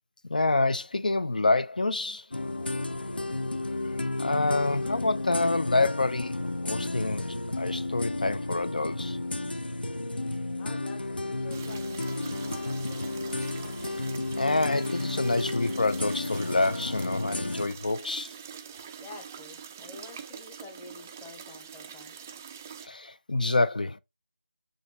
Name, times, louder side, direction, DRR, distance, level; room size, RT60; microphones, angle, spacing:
voice 1, 0.3-2.3 3.8-6.4 6.6-9.2 14.4-18.3 22.8-24.0, left 2 dB, 55° left, 0.6 m, -27 dB
sound 1, 2.3-17.7, left 2 dB, 70° left, 1.2 m, -32 dB
voice 2, 10.6-13.2 19.0-22.2, left 3 dB, 10° left, 0.9 m, -49 dB
sound 2, 11.5-22.9, right 7 dB, 15° right, 0.4 m, -44 dB
6.9 x 5.3 x 4.3 m
figure-of-eight pair, 165°, 5 cm